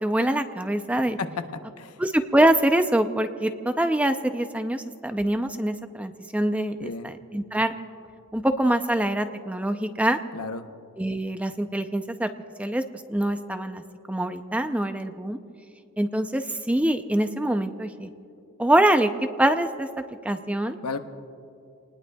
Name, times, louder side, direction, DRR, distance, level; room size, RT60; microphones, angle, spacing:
voice 1, 0.0-1.2 2.0-7.7 8.3-10.2 11.0-12.3 12.6-12.8 13.1-13.8 14.1-15.4 16.0-18.1 18.6-20.8, right 1 dB, 5° right, 8 dB, 0.4 m, -24 dB
voice 2, 1.5-1.9 6.8-7.1 10.3-10.6 20.8-21.0, left 4 dB, 90° left, 7 dB, 0.9 m, -33 dB
28.5 x 19.5 x 2.3 m, 2.6 s
head